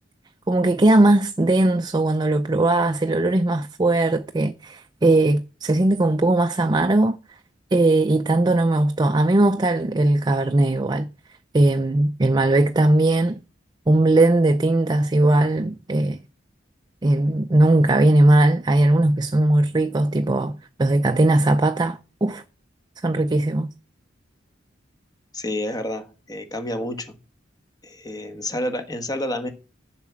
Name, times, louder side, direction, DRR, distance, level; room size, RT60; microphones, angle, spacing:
voice 1, 0.5-7.2 7.7-11.1 11.5-13.4 13.9-16.2 17.0-20.5 20.8-22.4 23.0-23.7, right 2 dB, 20° right, 0.4 m, -19 dB
voice 2, 25.3-27.1 27.8-29.5, left 1 dB, 20° left, 1.3 m, -29 dB
7.2 x 5.9 x 7.4 m
head